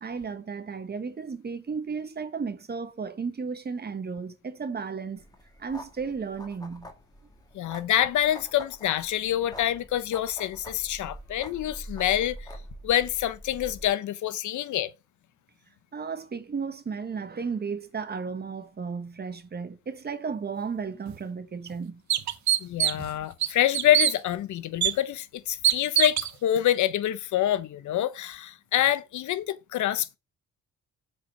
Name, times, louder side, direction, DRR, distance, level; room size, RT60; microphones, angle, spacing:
voice 1, 0.0-5.2 5.6-6.9 15.9-22.0, right 5 dB, 35° right, 1.2 m, -34 dB
sound 1, 5.2-13.9, equal, 10° left, 2.0 m, -45 dB
voice 2, 7.5-12.5 12.8-14.9 22.6-30.2, left 12 dB, 75° left, 0.9 m, -26 dB
sound 2, 21.1-21.2 21.7-21.8 22.1-23.1 23.4-24.1 24.8-24.9 25.6-26.3, right 11 dB, 70° right, 0.9 m, -23 dB
7.7 x 4.6 x 5.2 m
cardioid pair, 90°, 30 cm